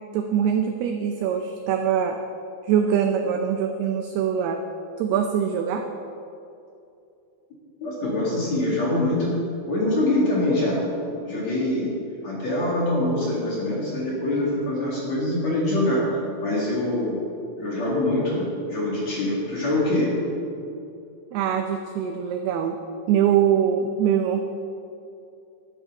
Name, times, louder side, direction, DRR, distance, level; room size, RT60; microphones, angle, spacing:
voice 1, 0.1-2.2 2.6-4.6 5.0-5.8 11.3-11.4 21.3-22.8 23.1-24.4, right 8 dB, 90° right, 5 dB, 2.2 m, -23 dB
voice 2, 7.8-9.4 9.7-10.8 11.3-12.0 12.2-16.0 16.4-17.2 17.6-20.2, left 1 dB, 50° left, -5 dB, 2.5 m, -24 dB
12.5 x 9.8 x 5.3 m, 2.7 s
omnidirectional pair, 5.4 m